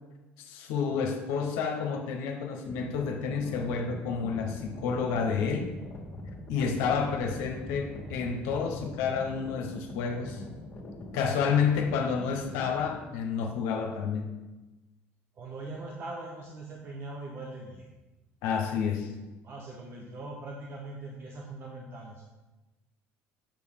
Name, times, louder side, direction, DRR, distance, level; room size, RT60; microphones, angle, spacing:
voice 1, 0.4-5.7 6.5-10.4 11.1-14.3 18.4-19.1, left 6 dB, 80° left, 2 dB, 0.9 m, -30 dB
sound 1, 2.6-13.0, left 2 dB, 35° left, 1.7 m, -43 dB
voice 2, 15.3-17.9 19.4-22.2, right 2 dB, 45° right, 0 dB, 0.9 m, -41 dB
7.4 x 4.7 x 3.6 m, 1.1 s
supercardioid pair, 95°, 5 cm